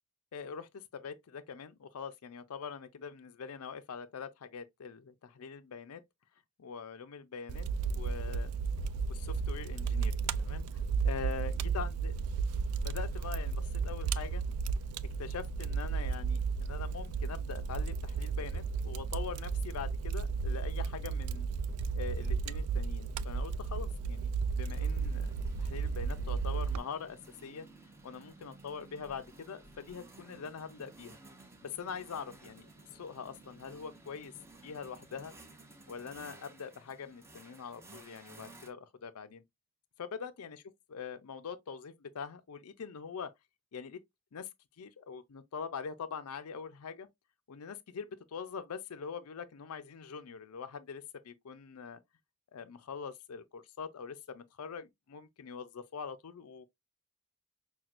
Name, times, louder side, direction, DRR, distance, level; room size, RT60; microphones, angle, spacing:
voice 1, 0.3-6.0 6.6-7.7 7.9-8.6 9.1-12.1 12.8-14.4 15.2-21.5 22.0-25.3 25.6-27.7 28.0-31.2 31.6-34.3 34.6-35.3 35.9-39.4 40.0-40.6 40.9-43.3 43.7-44.0 44.3-44.5 44.8-47.1 47.5-52.0 52.5-56.6, left 6 dB, 75° left, 0.5 m, -43 dB
Fire, 7.5-26.8, right 5 dB, 90° right, 0.3 m, -34 dB
sound 1, 23.7-38.7, right 2 dB, 10° right, 0.6 m, -55 dB
5.9 x 2.2 x 2.4 m
head